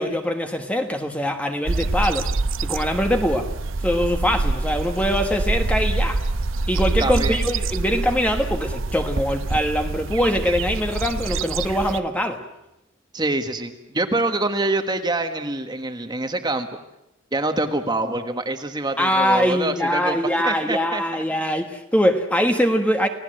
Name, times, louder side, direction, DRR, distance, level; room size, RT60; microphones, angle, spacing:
voice 1, 0.0-2.3 2.6-3.5 3.8-6.2 6.7-12.4 19.0-23.1, equal, 5° left, 5 dB, 1.3 m, -22 dB
sound 1, 1.7-12.0, right 3 dB, 70° right, 0.8 m, -26 dB
voice 2, 7.0-7.4 13.1-16.7 17.3-21.0, right 2 dB, 20° right, 7 dB, 1.5 m, -25 dB
29.5 x 17.5 x 7.7 m, 0.89 s
head